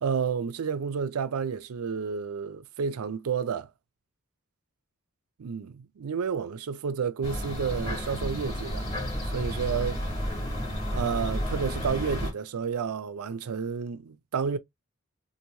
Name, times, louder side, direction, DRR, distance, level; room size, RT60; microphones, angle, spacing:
voice 1, 0.0-3.7 5.4-8.9 9.3-10.0 10.9-14.6, right 6 dB, 85° right, 0.4 m, -30 dB
sound 1, 7.2-12.3, equal, 30° left, 1.6 m, -31 dB
3.1 x 2.6 x 2.7 m
head